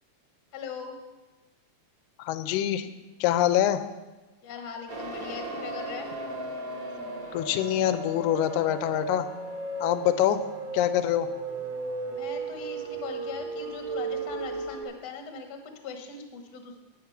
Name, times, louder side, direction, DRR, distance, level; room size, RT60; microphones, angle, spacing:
voice 1, 0.5-1.0 4.4-6.1 12.1-16.8, left 5 dB, 55° left, 5 dB, 1.2 m, -40 dB
voice 2, 2.2-2.9 3.2-3.8 7.3-9.3 9.8-10.4 10.7-11.3, left 12 dB, 80° left, 12 dB, 2.0 m, -25 dB
sound 1, 4.9-14.8, right 3 dB, 45° right, 1.2 m, -35 dB
9.7 x 9.3 x 5.7 m, 1.1 s
omnidirectional pair, 3.7 m